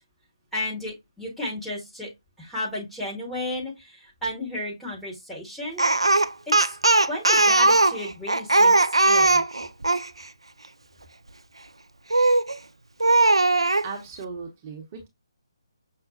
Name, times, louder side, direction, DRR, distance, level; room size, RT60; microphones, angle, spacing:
voice 1, 0.5-2.1 2.4-6.8 7.1-9.4, left 1 dB, 5° left, 1.0 m, -33 dB
Speech, 5.8-10.1 12.1-12.5 13.0-13.9, right 2 dB, 80° right, 0.3 m, -19 dB
voice 2, 13.8-15.1, right 5 dB, 25° right, 0.8 m, -37 dB
5.8 x 2.0 x 2.6 m
figure-of-eight pair, 145°, 3 cm